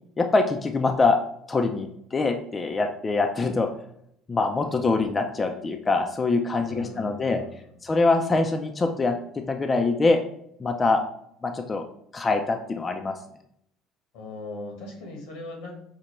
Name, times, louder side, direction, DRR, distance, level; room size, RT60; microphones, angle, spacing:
voice 1, 0.2-1.2 1.5-3.7 4.3-7.4 7.8-10.2 10.6-11.0 11.4-11.8 12.1-13.2, left 3 dB, 25° left, 4 dB, 0.4 m, -24 dB
voice 2, 6.6-7.8 14.1-15.8, left 2 dB, 80° left, 2 dB, 1.0 m, -40 dB
5.0 x 2.1 x 3.0 m, 0.72 s
supercardioid pair, 90°, 0 cm